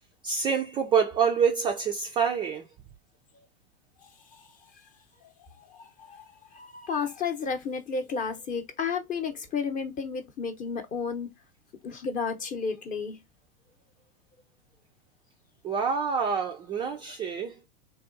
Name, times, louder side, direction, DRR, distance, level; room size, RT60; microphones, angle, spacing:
voice 1, 0.2-2.7 15.6-17.6, right 6 dB, 15° right, 0.3 m, -26 dB
voice 2, 4.0-4.5 5.2-11.3 11.8-13.2, left 5 dB, 25° left, 0.8 m, -33 dB
3.5 x 2.8 x 2.6 m
hypercardioid pair, 125°, 31 cm